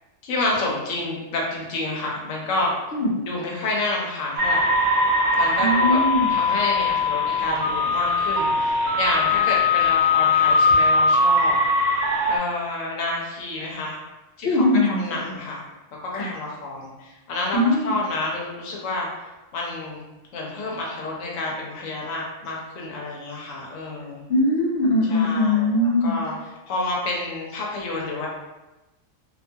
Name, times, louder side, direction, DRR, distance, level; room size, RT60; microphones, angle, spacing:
voice 1, 0.2-2.7 3.3-4.7 5.4-6.0 6.3-11.6 12.3-14.0 14.4-15.6 16.0-19.1 19.5-20.0 20.3-24.2 25.1-26.3 26.7-28.3, left 2 dB, 85° left, -2 dB, 1.0 m, -29 dB
sound 1, 4.4-12.4, left 2 dB, 85° right, 0.9 m, -20 dB
voice 2, 5.6-6.3 14.4-15.3 16.1-16.3 17.5-17.9 24.3-26.1, left 1 dB, 65° left, -1 dB, 0.8 m, -21 dB
2.5 x 2.2 x 2.6 m, 1.0 s
omnidirectional pair, 1.3 m